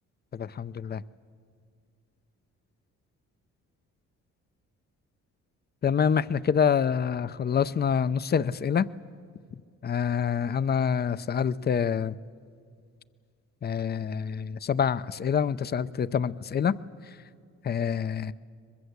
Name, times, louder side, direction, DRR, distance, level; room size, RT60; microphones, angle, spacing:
voice 1, 0.3-1.0 5.8-8.9 9.8-12.1 13.6-16.8 17.6-18.3, left 7 dB, 35° left, 16 dB, 0.6 m, -26 dB
23.0 x 21.5 x 8.1 m, 2.2 s
cardioid pair, 90°, 30 cm